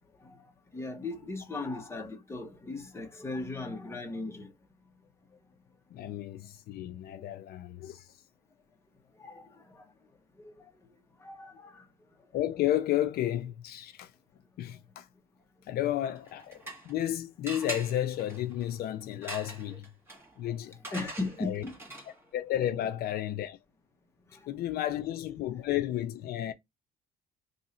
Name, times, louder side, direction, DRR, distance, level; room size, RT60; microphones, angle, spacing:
voice 1, 0.7-4.5 6.0-6.1 7.1-7.2 9.2-9.8 10.4-10.7 11.2-11.8 19.7-19.8 20.8-21.8 22.7-22.8 24.3-24.5 24.9-25.1, left 2 dB, 15° left, 1.0 m, -38 dB
voice 2, 5.9-8.1 12.3-14.1 14.6-15.1 15.7-19.9 20.4-20.8 21.4-21.6 22.3-23.6 24.5-26.5, left 12 dB, 65° left, 0.5 m, -32 dB
sound 1, 16.2-17.1 17.5-22.3, right 1 dB, 15° right, 1.8 m, -43 dB
3.1 x 2.7 x 4.2 m
cardioid pair, 110°, 17 cm